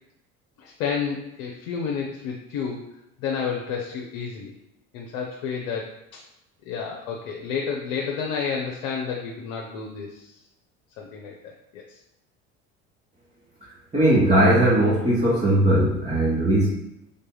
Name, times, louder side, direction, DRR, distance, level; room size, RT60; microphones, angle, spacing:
voice 1, 0.6-2.8 3.2-4.5 4.9-6.2 6.7-10.3 11.0-11.8, left 6 dB, 65° left, 0 dB, 0.7 m, -30 dB
voice 2, 13.9-16.7, right 1 dB, 15° right, -8 dB, 1.2 m, -19 dB
3.6 x 2.7 x 3.9 m, 0.87 s
hypercardioid pair, 65°, 40 cm